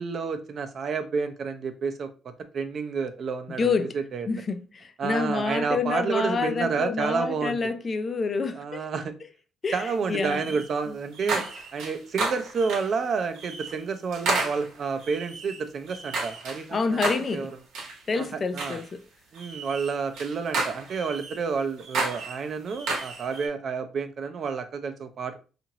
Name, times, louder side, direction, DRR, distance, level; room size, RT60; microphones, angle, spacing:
voice 1, 0.0-2.1 2.5-3.7 4.1-4.3 5.0-7.6 8.6-9.1 9.7-11.5 11.7-17.5 18.2-18.3 18.5-18.8 19.3-25.4, right 5 dB, 55° right, 0.5 m, -30 dB
voice 2, 3.5-4.0 4.3-8.9 9.6-10.5 10.9-11.0 11.2-11.5 16.7-17.5 18.1-19.0, left 4 dB, 40° left, 0.4 m, -28 dB
sound 1, 10.2-10.7 11.1-13.0 13.4-13.8 14.1-16.6 17.0-17.4 17.7-18.0 18.6-18.9 19.3-21.4 21.8-23.5, right 3 dB, 90° right, 0.8 m, -32 dB
2.9 x 2.5 x 2.8 m
cardioid pair, 90°, 0 cm